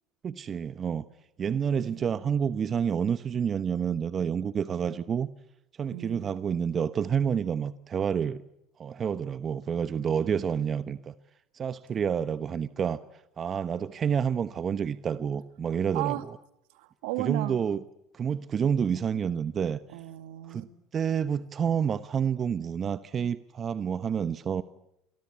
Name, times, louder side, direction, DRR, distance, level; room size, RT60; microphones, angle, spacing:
voice 1, 0.2-1.0 1.4-5.3 5.8-8.4 8.8-11.1 11.5-13.0 13.4-16.4 17.2-17.8 18.1-19.8 20.5-20.7 20.9-24.6, right 7 dB, 35° right, 14 dB, 1.1 m, -29 dB
voice 2, 1.4-2.1 5.9-6.3 15.9-16.2 16.7-17.6 19.9-20.6, right 18 dB, 70° right, 11 dB, 2.2 m, -35 dB
29.5 x 23.5 x 8.6 m, 0.80 s
hypercardioid pair, 80°, 0 cm